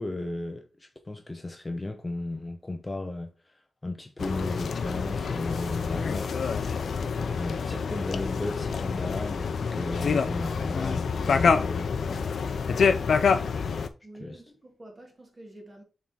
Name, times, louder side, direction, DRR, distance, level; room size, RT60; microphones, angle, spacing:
voice 1, 0.0-6.6 7.1-13.0 14.2-14.4, left 2 dB, 20° left, 0.6 m, -35 dB
sound 1, 4.2-13.9, left 5 dB, 65° left, 0.6 m, -27 dB
voice 2, 14.0-15.8, right 1 dB, 25° right, 2.2 m, -48 dB
7.2 x 3.7 x 4.1 m
wide cardioid pair, 145°, 0 cm